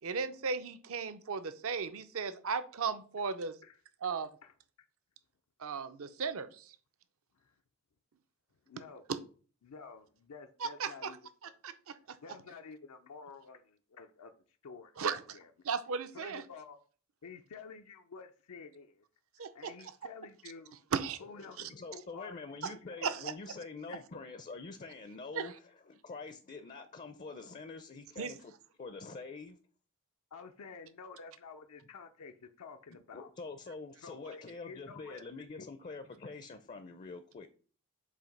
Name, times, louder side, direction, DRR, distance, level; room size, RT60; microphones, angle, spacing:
voice 1, 0.0-3.6 4.0-4.3 5.6-6.8 9.1-9.2 10.6-11.2 11.4-12.2 15.0-15.4 15.6-16.4 19.4-19.7 20.9-21.2 21.6-21.7 22.6-22.7 23.0-23.3 25.3-25.5 28.2-28.3, right 5 dB, 65° right, 0.6 m, -36 dB
voice 2, 4.0-4.5 7.3-7.5 8.7-9.1 9.6-11.2 11.4-11.5 12.2-14.3 14.6-15.5 16.1-16.8 17.2-19.0 19.5-20.7 21.2-22.4 22.9-23.1 23.9-24.0 30.3-33.3 34.0-35.2 35.5-35.7, left 5 dB, 85° left, 0.5 m, -50 dB
voice 3, 21.4-25.5 25.9-28.5 28.8-29.6 33.1-37.5, left 3 dB, 35° left, 0.5 m, -46 dB
7.5 x 2.7 x 5.2 m
head